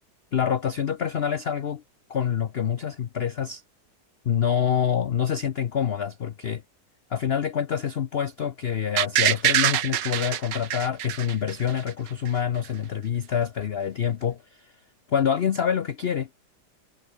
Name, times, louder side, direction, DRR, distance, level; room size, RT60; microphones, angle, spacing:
voice 1, 0.3-1.8 2.1-3.6 4.2-6.6 7.1-14.7 15.1-16.3, left 8 dB, 85° left, 0.5 m, -26 dB
sound 1, 9.0-11.9 12.3-12.4, right 11 dB, 70° right, 1.6 m, -24 dB
omnidirectional pair, 2.0 m